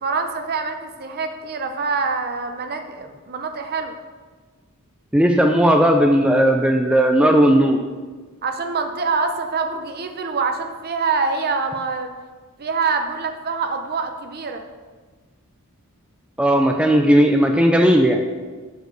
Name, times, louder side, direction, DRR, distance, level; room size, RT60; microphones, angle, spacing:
voice 1, 0.0-3.9 8.4-12.1 12.6-14.7, right 4 dB, 45° right, 6 dB, 0.7 m, -25 dB
voice 2, 5.1-7.8 16.4-18.2, equal, 5° right, 3 dB, 0.4 m, -16 dB
6.6 x 5.2 x 6.3 m, 1.4 s
head